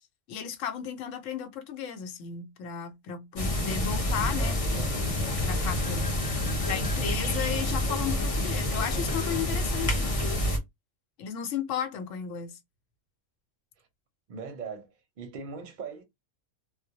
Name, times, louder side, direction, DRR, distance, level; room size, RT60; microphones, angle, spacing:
voice 1, 0.3-5.0 5.3-6.1 6.7-10.2 11.2-12.6, left 8 dB, 80° left, 1.0 m, -34 dB
sound 1, 3.4-10.6, left 1 dB, 40° left, 0.5 m, -28 dB
voice 2, 14.3-14.9 15.2-16.0, right 5 dB, 50° right, 0.6 m, -39 dB
2.2 x 2.0 x 2.7 m
omnidirectional pair, 1.3 m